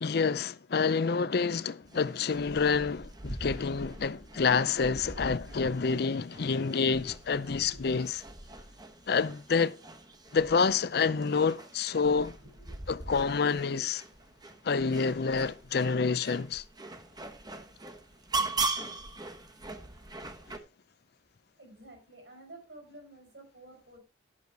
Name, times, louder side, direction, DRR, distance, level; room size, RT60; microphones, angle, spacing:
voice 1, 0.0-8.2 9.1-9.8 10.3-12.4 12.9-14.0 14.6-16.6, left 5 dB, 60° left, 0.5 m, -28 dB
sound 1, 1.9-20.6, right 3 dB, 25° right, 1.0 m, -40 dB
voice 2, 12.4-12.7 21.6-24.0, right 2 dB, 75° right, 4.7 m, -51 dB
11.5 x 6.8 x 4.6 m
head